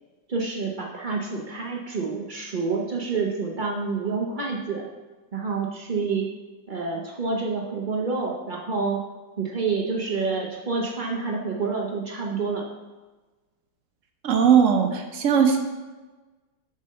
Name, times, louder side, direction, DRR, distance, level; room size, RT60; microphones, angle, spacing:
voice 1, 0.3-4.8 5.3-6.3 6.7-9.0 9.4-12.6, right 4 dB, 80° right, -1 dB, 0.4 m, -28 dB
voice 2, 14.2-15.6, right 7 dB, 55° right, 5 dB, 0.9 m, -19 dB
7.4 x 5.3 x 6.6 m, 1.2 s
omnidirectional pair, 2.3 m